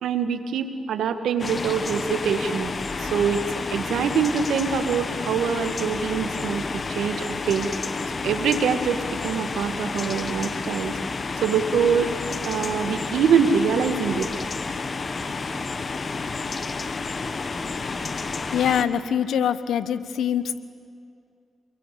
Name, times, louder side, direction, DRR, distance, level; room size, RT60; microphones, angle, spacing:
voice 1, 0.0-2.7 3.0-3.4 3.7-7.7 8.2-11.0 11.4-12.1 12.5-14.3, right 6 dB, 80° right, 8 dB, 1.8 m, -24 dB
sound 1, 1.4-18.8, left 4 dB, 50° left, 1.7 m, -30 dB
voice 2, 18.5-20.6, left 9 dB, 80° left, 14 dB, 1.0 m, -24 dB
28.5 x 22.5 x 8.5 m, 2.4 s
supercardioid pair, 50°, 0 cm